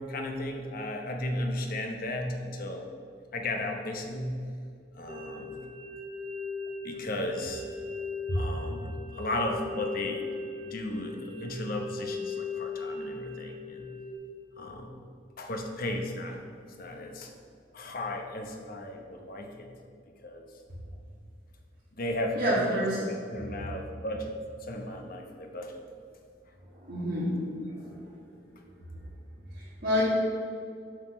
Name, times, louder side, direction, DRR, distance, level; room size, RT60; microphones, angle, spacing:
voice 1, 0.0-2.9 3.3-4.4 4.9-5.6 6.8-7.6 8.3-10.3 10.6-13.9 14.6-15.0 15.4-16.4 16.8-17.3 17.7-19.7 20.2-20.5 21.9-24.3 24.6-25.8, left 1 dB, 50° left, 3 dB, 0.9 m, -35 dB
sound 1, 5.1-14.1, left 4 dB, 30° right, 0.8 m, -38 dB
voice 2, 22.4-23.0 26.8-27.4 27.7-27.9 29.5-30.0, equal, 55° right, -12 dB, 2.1 m, -28 dB
7.4 x 4.1 x 6.7 m, 2.3 s
head